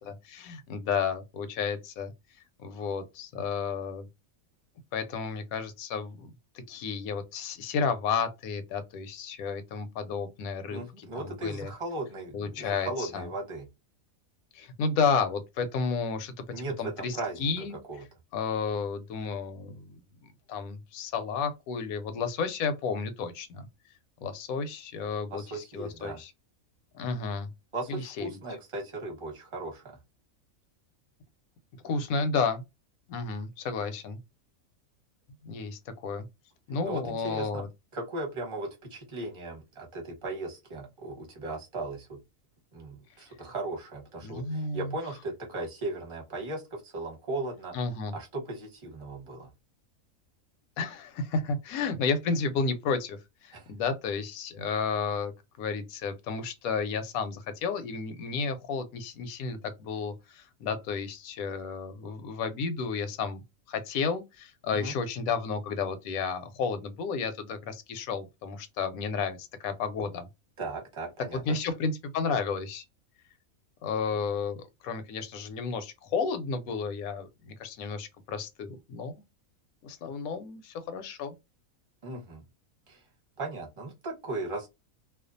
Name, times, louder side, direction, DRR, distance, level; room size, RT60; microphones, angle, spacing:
voice 1, 0.0-2.1 2.6-4.1 4.9-11.7 12.3-13.3 14.5-16.3 16.8-17.8 18.3-20.0 20.5-23.7 24.2-26.3 26.9-27.5 27.9-28.4 31.8-32.6 33.1-34.2 35.4-36.3 36.7-37.7 44.2-44.9 47.7-48.1 50.8-55.3 55.6-63.4 63.7-70.3 71.3-72.8 73.8-79.2 79.8-81.3, left 5 dB, 80° left, 1.0 m, -32 dB
voice 2, 10.7-13.7 16.5-18.0 25.3-26.2 27.7-30.0 36.8-37.6 37.9-42.2 42.7-47.7 48.1-49.5 53.5-53.7 64.7-64.9 70.6-71.6 82.0-82.4 82.9-83.0 83.4-84.7, right 2 dB, 25° right, 0.9 m, -37 dB
2.4 x 2.2 x 2.5 m
omnidirectional pair, 1.5 m